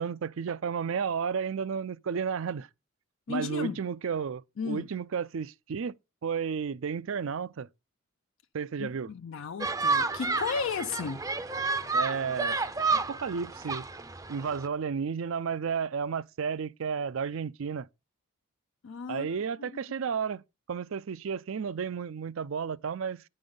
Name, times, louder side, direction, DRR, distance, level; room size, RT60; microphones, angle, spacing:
voice 1, 0.0-2.7 3.3-6.0 6.2-7.7 8.5-9.1 11.9-12.6 12.9-13.8 14.3-17.9 19.1-20.4 20.7-23.2, right 6 dB, 70° right, 0.4 m, -32 dB
voice 2, 3.3-3.8 4.6-4.9 8.8-11.2 18.8-19.3 19.6-19.7, left 5 dB, 65° left, 0.4 m, -34 dB
sound 1, 9.6-14.7, right 3 dB, 15° right, 0.5 m, -30 dB
9.5 x 5.4 x 5.3 m
head